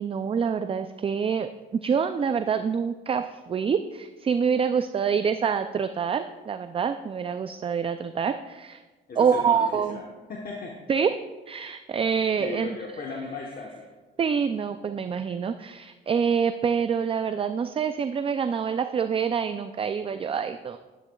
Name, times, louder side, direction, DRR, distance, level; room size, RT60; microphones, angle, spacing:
voice 1, 0.0-8.8 9.2-10.0 10.9-11.2 11.5-12.8 14.2-20.8, right 6 dB, 30° right, 9 dB, 0.3 m, -26 dB
voice 2, 9.1-10.0 10.3-10.8 12.4-13.9, left 4 dB, 45° left, 0 dB, 1.1 m, -36 dB
10.5 x 10.0 x 2.3 m, 1.3 s
cardioid pair, 90°, 20 cm